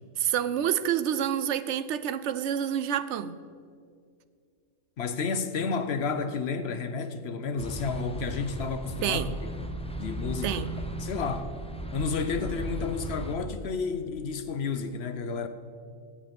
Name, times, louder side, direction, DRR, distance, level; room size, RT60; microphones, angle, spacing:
voice 1, 0.2-3.4 9.0-9.4 10.4-10.7, right 9 dB, 65° right, 14 dB, 0.8 m, -28 dB
voice 2, 5.0-9.2 9.6-9.7 10.0-10.6 11.0-11.5 11.9-15.5, left 5 dB, 55° left, 10 dB, 1.0 m, -31 dB
sound 1, 7.6-13.4, equal, 5° left, 0.6 m, -36 dB
16.0 x 8.1 x 5.3 m, 2.2 s
omnidirectional pair, 1.4 m